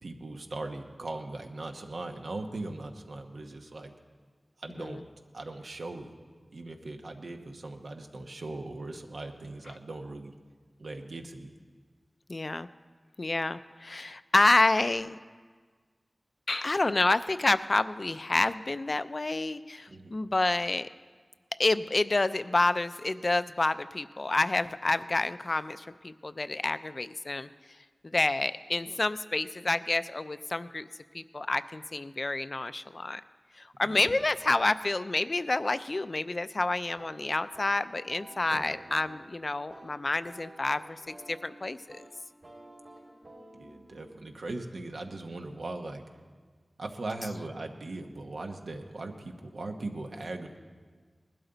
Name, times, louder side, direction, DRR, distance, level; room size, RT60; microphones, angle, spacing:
voice 1, 0.0-3.9 4.6-5.0 5.3-6.1 6.5-10.3 10.8-11.6 19.9-20.1 33.8-34.2 38.5-38.8 43.6-46.0 46.8-50.6, right 2 dB, 90° right, 4 dB, 1.0 m, -39 dB
voice 2, 12.3-12.7 13.2-15.2 16.5-20.9 21.6-27.5 28.0-30.9 31.1-33.2 33.6-42.0, left 2 dB, 50° left, 13 dB, 0.4 m, -28 dB
sound 1, 37.0-45.6, right 1 dB, 75° right, 3.9 m, -52 dB
19.5 x 12.0 x 3.9 m, 1.5 s
wide cardioid pair, 70°, 0 cm